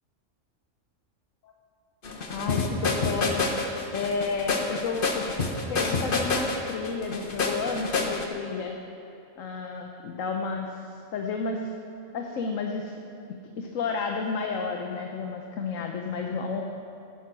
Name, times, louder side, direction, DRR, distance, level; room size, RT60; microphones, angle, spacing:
sound 1, 2.0-8.3, left 3 dB, 45° left, 1.3 m, -28 dB
voice 1, 2.3-3.5 3.9-5.2 5.7-8.8 9.4-11.7 12.1-12.9 13.6-16.6, left 4 dB, 90° left, 2 dB, 1.3 m, -31 dB
13.0 x 10.5 x 6.2 m, 2.7 s
omnidirectional pair, 1.3 m